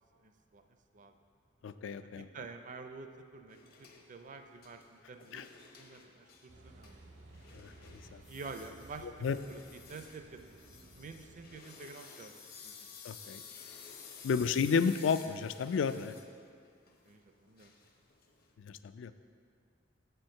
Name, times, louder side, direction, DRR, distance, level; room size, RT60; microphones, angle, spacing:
voice 1, 0.2-0.6 0.9-1.1 2.2-5.4 5.8-6.9 8.3-9.6 9.9-12.3 12.6-12.9 17.0-17.7, right 4 dB, 45° right, 7 dB, 0.5 m, -49 dB
voice 2, 1.6-2.3 5.3-5.5 7.5-8.2 9.0-9.4 13.0-13.4 14.2-16.1 18.6-19.1, left 5 dB, 75° left, 12 dB, 0.3 m, -32 dB
sound 1, 3.5-18.5, left 6 dB, 55° left, 0.8 m, -54 dB
Car passing by / Idling / Accelerating revving vroom, 6.5-11.6, right 2 dB, 70° right, 0.8 m, -56 dB
7.6 x 4.5 x 6.4 m, 2.2 s
head